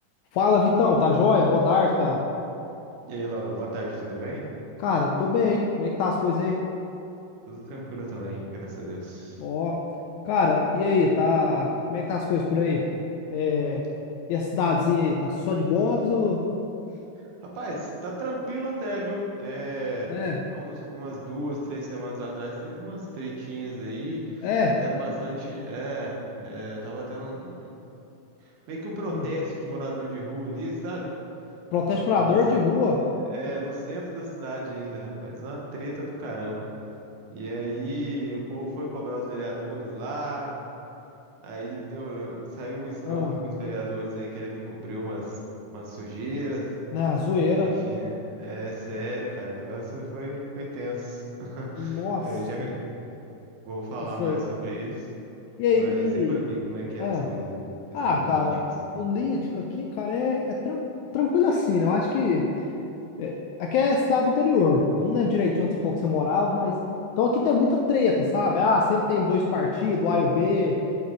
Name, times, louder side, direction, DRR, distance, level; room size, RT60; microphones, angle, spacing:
voice 1, 0.3-2.2 4.8-6.6 9.4-9.8 10.3-12.9 13.3-13.8 14.3-16.5 20.1-20.4 24.4-24.8 29.1-29.3 31.7-33.0 43.1-43.4 46.9-47.7 51.8-52.3 54.2-54.4 55.6-56.4 57.0-57.3 57.9-58.6 58.9-60.8 61.1-62.5 63.2-66.8 67.2-70.8, left 4 dB, 80° left, 0 dB, 1.7 m, -23 dB
voice 2, 3.0-4.4 7.5-9.4 17.4-20.1 20.5-24.5 24.8-27.7 28.4-31.1 31.8-32.6 33.3-36.7 37.3-40.7 41.4-45.4 45.7-46.7 47.6-52.9 53.7-55.1 55.7-57.7 58.0-58.5 58.8-58.9, right 1 dB, 70° right, -2 dB, 2.5 m, -34 dB
7.8 x 7.2 x 3.8 m, 2.8 s
omnidirectional pair, 3.8 m